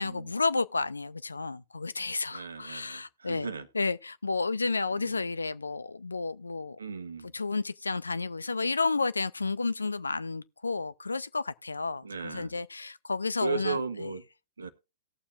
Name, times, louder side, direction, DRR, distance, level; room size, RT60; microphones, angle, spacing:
voice 1, 0.0-3.5 3.7-6.8 7.3-13.8, left 3 dB, 85° left, 0.4 m, -31 dB
voice 2, 2.3-3.7 4.9-5.2 6.8-7.3 12.0-12.5 13.4-14.2 14.6-14.7, right 4 dB, 80° right, 1.1 m, -36 dB
18.0 x 7.0 x 2.4 m
figure-of-eight pair, 110°, 0 cm